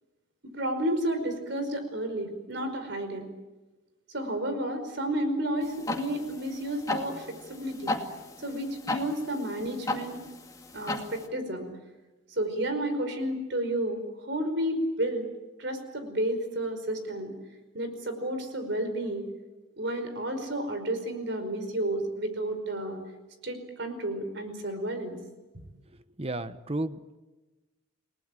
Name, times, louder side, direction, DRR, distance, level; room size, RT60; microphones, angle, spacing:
voice 1, 0.4-3.3 4.1-8.0 8.4-10.2 10.7-11.7 12.3-15.2 15.6-17.3 17.7-19.3 19.8-23.0 23.4-25.2, right 1 dB, 55° right, 7 dB, 5.1 m, -31 dB
sound 1, 5.6-11.3, left 2 dB, 15° left, 2.3 m, -36 dB
voice 2, 26.2-27.2, right 2 dB, 30° right, 12 dB, 1.0 m, -33 dB
30.0 x 19.5 x 9.1 m, 1.2 s
head